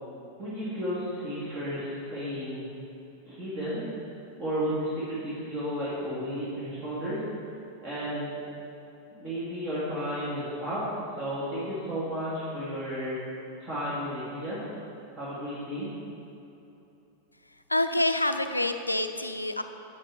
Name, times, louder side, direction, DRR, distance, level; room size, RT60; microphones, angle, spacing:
voice 1, 0.4-2.7 3.3-3.9 4.4-7.2 7.8-8.4 9.1-10.8 11.2-13.2 13.6-14.6 15.1-15.9, equal, 35° right, -9 dB, 2.1 m, -33 dB
voice 2, 17.7-19.6, left 1 dB, 85° left, 8 dB, 0.4 m, -27 dB
8.0 x 7.4 x 4.5 m, 3.0 s
figure-of-eight pair, 90°, 0 cm